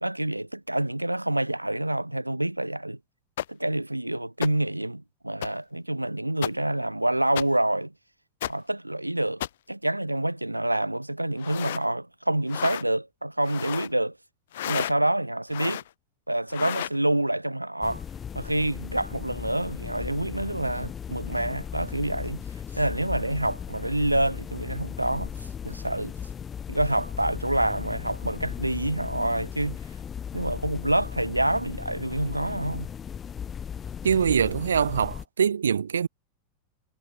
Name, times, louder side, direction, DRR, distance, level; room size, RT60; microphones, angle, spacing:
voice 1, 0.0-3.0 3.5-7.9 8.5-9.4 9.7-14.2 14.7-15.8 16.3-18.0 18.3-22.4 22.7-25.3 25.6-26.1 26.7-29.8 30.3-32.9, right 1 dB, 85° right, 1.2 m, -27 dB
sound 1, 3.4-3.5 4.4-4.5 5.4-5.5 6.4-6.5 7.4-7.5 8.4-8.5 9.4-9.5 11.4-11.8 12.5-12.8 13.4-13.9 14.5-14.9 15.5-15.9 16.5-17.0, left 12 dB, 60° left, 0.6 m, -31 dB
sound 2, 17.8-35.2, left 8 dB, 20° left, 3.4 m, -37 dB
voice 2, 34.0-36.1, right 7 dB, 70° right, 0.9 m, -23 dB
figure-of-eight pair, 90°, 0 cm